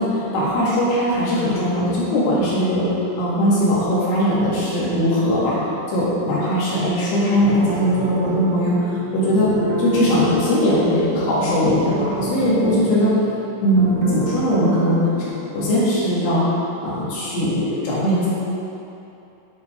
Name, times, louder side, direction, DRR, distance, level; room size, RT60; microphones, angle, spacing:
voice 1, 0.0-2.9 3.2-5.6 5.9-9.5 9.8-13.2 13.6-15.3 15.5-16.4 16.8-18.3, equal, 80° left, -8 dB, 4.0 m, -19 dB
sound 1, 7.4-15.9, right 1 dB, 70° right, 1.9 m, -30 dB
9.6 x 5.1 x 4.3 m, 2.8 s
omnidirectional pair, 5.0 m